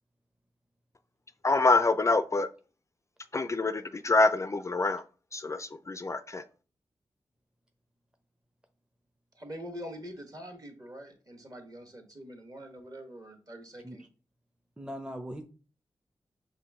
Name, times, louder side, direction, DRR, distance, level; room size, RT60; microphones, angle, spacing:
voice 1, 1.4-2.5 3.3-5.0 5.3-6.4, left 3 dB, 30° left, 0.3 m, -26 dB
voice 2, 9.3-14.0, equal, 40° right, 1.4 m, -44 dB
voice 3, 14.8-15.4, equal, 10° right, 0.6 m, -40 dB
5.0 x 2.6 x 3.5 m
supercardioid pair, 40°, 9 cm